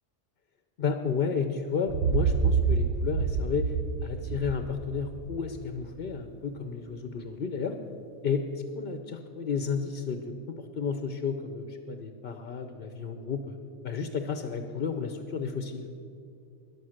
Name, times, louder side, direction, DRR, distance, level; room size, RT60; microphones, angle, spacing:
voice 1, 0.8-3.7 4.0-7.8 8.2-13.6 13.8-15.9, left 5 dB, 55° left, 7 dB, 0.9 m, -32 dB
sound 1, 1.9-5.7, right 5 dB, 70° right, 0.8 m, -28 dB
13.5 x 10.5 x 6.5 m, 2.5 s
omnidirectional pair, 1.2 m